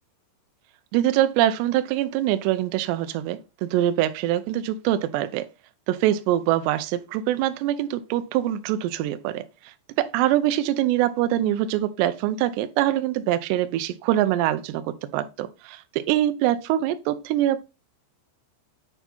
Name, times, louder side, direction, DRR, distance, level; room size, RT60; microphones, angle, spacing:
voice 1, 0.9-5.5 5.9-17.6, right 13 dB, 90° right, 2.4 m, -24 dB
8.6 x 3.4 x 4.2 m
omnidirectional pair, 5.7 m